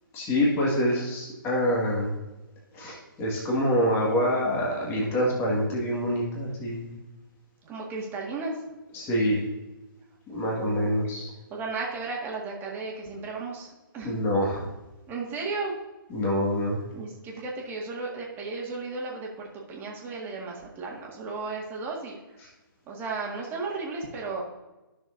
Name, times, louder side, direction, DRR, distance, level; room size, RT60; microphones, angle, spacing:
voice 1, 0.1-2.1 2.7-6.9 8.9-9.4 10.3-11.3 14.0-14.7 16.1-16.8, equal, 20° left, -3 dB, 1.8 m, -26 dB
voice 2, 7.6-8.6 10.3-10.9 11.5-14.1 15.1-15.8 16.9-22.2 22.9-24.4, right 3 dB, 20° right, -2 dB, 1.8 m, -34 dB
14.0 x 6.4 x 2.6 m, 1.1 s
hypercardioid pair, 145°, 12 cm